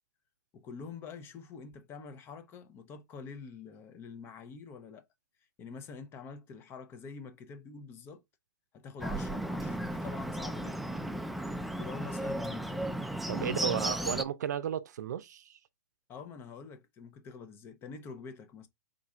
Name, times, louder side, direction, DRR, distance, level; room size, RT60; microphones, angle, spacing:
voice 1, 0.5-5.0 5.6-8.2 8.7-11.1 11.7-13.0 13.3-14.1 16.1-18.7, left 5 dB, 25° left, 0.7 m, -46 dB
Bird, 9.0-14.2, right 1 dB, ahead, 0.3 m, -35 dB
voice 2, 13.3-15.6, right 9 dB, 75° right, 0.5 m, -34 dB
3.8 x 2.4 x 4.2 m
hypercardioid pair, 140°, 9 cm